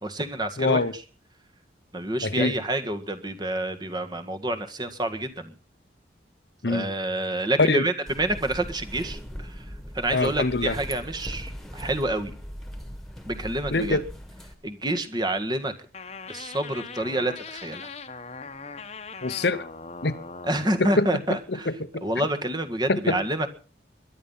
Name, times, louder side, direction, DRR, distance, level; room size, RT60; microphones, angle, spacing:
voice 1, 0.0-0.8 1.9-5.5 6.7-9.5 9.9-12.3 13.3-14.0 14.6-15.7 16.3-17.9 20.4-21.7 22.0-23.5, right 1 dB, 20° right, 1.7 m, -28 dB
voice 2, 0.6-0.9 2.2-2.5 6.6-6.9 7.6-7.9 10.1-10.8 13.7-14.1 19.2-19.7 20.0-20.2 20.8-21.1 21.5-22.0 22.9-23.2, left 3 dB, 60° left, 1.0 m, -24 dB
sound 1, 8.1-14.6, equal, ahead, 2.1 m, -39 dB
sound 2, 15.9-20.9, left 4 dB, 35° left, 1.2 m, -40 dB
21.5 x 11.5 x 5.7 m
head